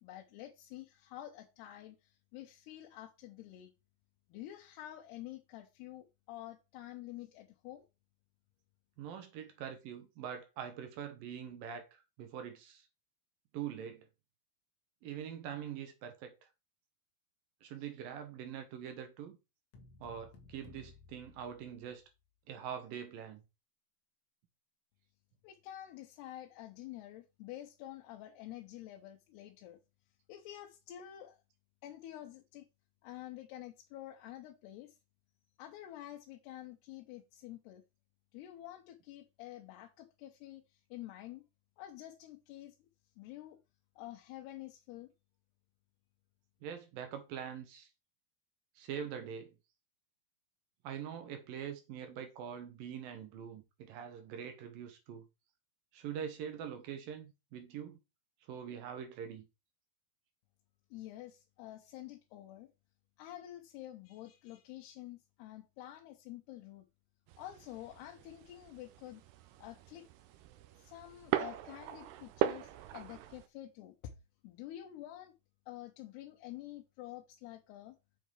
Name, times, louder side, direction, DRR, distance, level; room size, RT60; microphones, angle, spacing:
voice 1, 0.0-3.7 4.3-7.9 25.4-29.8 30.3-31.4 31.8-32.7 33.0-35.0 35.6-37.8 38.3-41.4 41.8-42.9 43.2-43.6 44.0-45.1 60.9-62.7 63.2-66.9 67.4-69.2 69.6-70.1 70.7-74.2 74.4-75.3 75.7-78.0, left 13 dB, 85° left, 3.0 m, -49 dB
voice 2, 9.0-12.8 13.5-14.1 15.0-16.3 17.6-19.4 20.0-22.0 22.5-23.4 46.6-47.9 48.8-49.6 50.8-55.3 55.9-58.0 58.5-59.5, right 8 dB, 65° right, 2.8 m, -44 dB
sound 1, 19.7-22.2, left 4 dB, 55° left, 2.0 m, -58 dB
sound 2, 67.3-73.5, right 12 dB, 85° right, 2.9 m, -40 dB
7.8 x 5.5 x 4.7 m
omnidirectional pair, 4.6 m